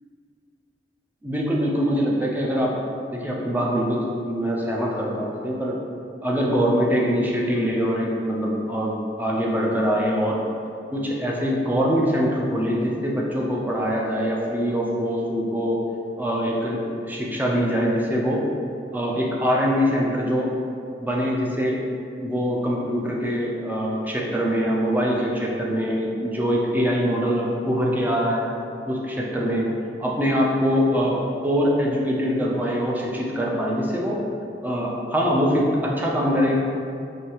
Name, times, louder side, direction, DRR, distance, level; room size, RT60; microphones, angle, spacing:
voice 1, 1.2-2.7 3.1-5.8 6.2-10.4 10.9-15.8 16.2-18.4 18.9-20.5 21.0-21.8 22.2-28.5 28.9-29.7 30.0-34.2 34.6-36.5, equal, 10° right, -3 dB, 0.5 m, -23 dB
4.8 x 2.7 x 2.9 m, 2.5 s
head